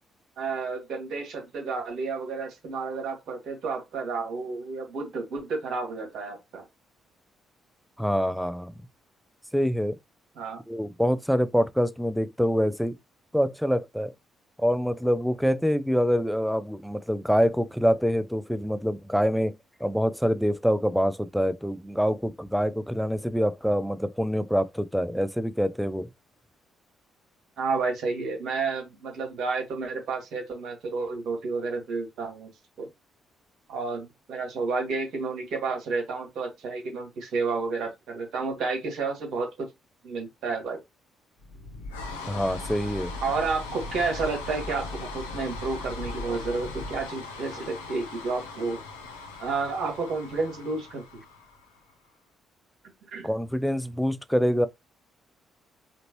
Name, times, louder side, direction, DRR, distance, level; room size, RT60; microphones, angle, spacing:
voice 1, 0.4-6.6 10.4-10.6 27.6-32.5 32.8-32.9 33.7-39.7 40.0-40.8 43.2-48.8 49.4-51.0 53.1-53.3, right 4 dB, 60° right, 2.0 m, -31 dB
voice 2, 8.0-8.7 9.5-10.0 10.7-12.9 13.3-14.1 14.6-19.5 19.8-26.1 42.3-43.1 53.2-54.7, equal, ahead, 0.5 m, -25 dB
sound 1, 41.4-51.9, left 3 dB, 80° left, 0.8 m, -38 dB
5.1 x 2.9 x 3.0 m
figure-of-eight pair, 45°, 0 cm